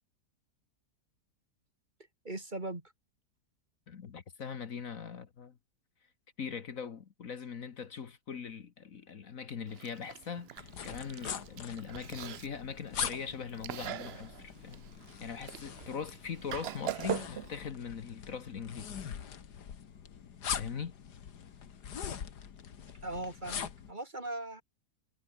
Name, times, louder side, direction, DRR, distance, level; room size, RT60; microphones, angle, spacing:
voice 1, 2.2-2.9 23.0-24.6, right 2 dB, 30° right, 2.8 m, -39 dB
voice 2, 3.9-5.6 6.4-14.8 15.2-19.0 20.5-20.9, left 6 dB, 55° left, 1.7 m, -41 dB
Chewing mastication, 9.7-17.6, right 11 dB, 65° right, 0.6 m, -43 dB
sound 1, 10.6-23.9, left 8 dB, 85° left, 2.1 m, -42 dB
omnidirectional pair, 1.7 m